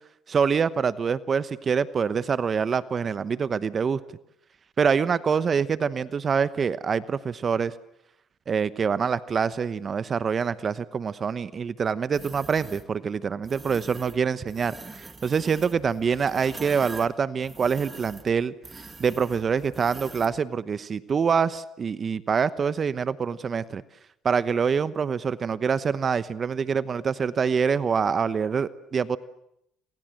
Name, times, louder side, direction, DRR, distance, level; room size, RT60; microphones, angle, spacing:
voice 1, 0.3-4.0 4.8-7.7 8.5-18.5 19.0-23.8 24.2-29.2, right 6 dB, 40° right, 15 dB, 1.0 m, -25 dB
sound 1, 12.1-12.9 13.4-14.2 14.5-20.4, right 3 dB, 20° right, 2.2 m, -43 dB
28.0 x 24.5 x 7.8 m, 0.78 s
supercardioid pair, 95°, 0 cm